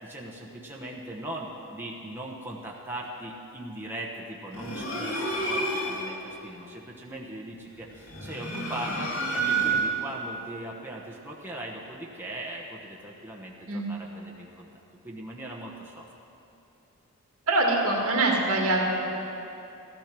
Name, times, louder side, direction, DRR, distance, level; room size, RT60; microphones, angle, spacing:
voice 1, 0.0-14.7 15.0-16.1, right 1 dB, 10° right, -3 dB, 1.1 m, -39 dB
sound 1, 4.5-6.1 8.0-10.0, right 3 dB, 65° left, 2.2 m, -29 dB
voice 2, 17.5-18.9, right 2 dB, 65° right, -1 dB, 2.3 m, -24 dB
14.0 x 13.5 x 6.1 m, 2.9 s
head